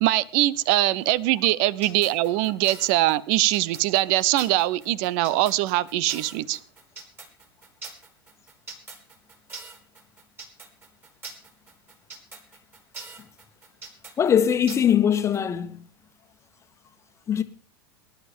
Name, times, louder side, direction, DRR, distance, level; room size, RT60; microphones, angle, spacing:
voice 1, 0.0-6.6, right 16 dB, 45° right, 0.8 m, -22 dB
sound 1, 1.8-15.4, right 3 dB, 20° right, 3.8 m, -42 dB
voice 2, 14.2-15.8 17.3-17.4, left 8 dB, 20° left, 1.5 m, -21 dB
19.0 x 11.5 x 5.2 m
figure-of-eight pair, 85°, 12 cm